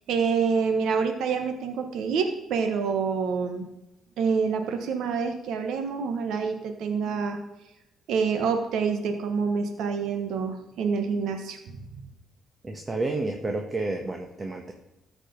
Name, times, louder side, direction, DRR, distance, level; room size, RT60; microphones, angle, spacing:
voice 1, 0.1-3.7 4.2-7.4 8.1-11.8, right 5 dB, 80° right, 6 dB, 1.2 m, -27 dB
voice 2, 12.6-14.7, right 2 dB, 25° right, 3 dB, 1.3 m, -30 dB
13.5 x 5.1 x 5.3 m, 0.92 s
cardioid pair, 90°, 0 cm